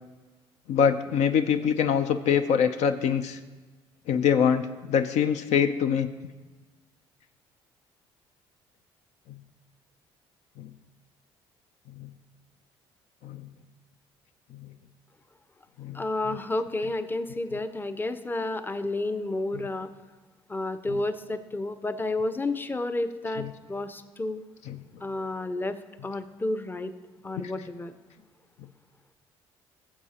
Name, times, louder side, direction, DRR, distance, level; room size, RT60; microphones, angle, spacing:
voice 1, 0.7-3.4 4.1-6.1 10.6-10.7 12.0-12.1 13.2-13.4 15.8-16.4 20.9-21.0 23.4-23.5 24.7-24.8 27.4-27.5, left 7 dB, 65° left, 9 dB, 0.5 m, -24 dB
voice 2, 15.9-19.9 20.5-24.4 25.0-25.8 26.0-26.9 27.2-27.9, left 2 dB, 15° left, 11 dB, 0.6 m, -31 dB
15.5 x 7.2 x 2.9 m, 1.3 s
hypercardioid pair, 55°, 12 cm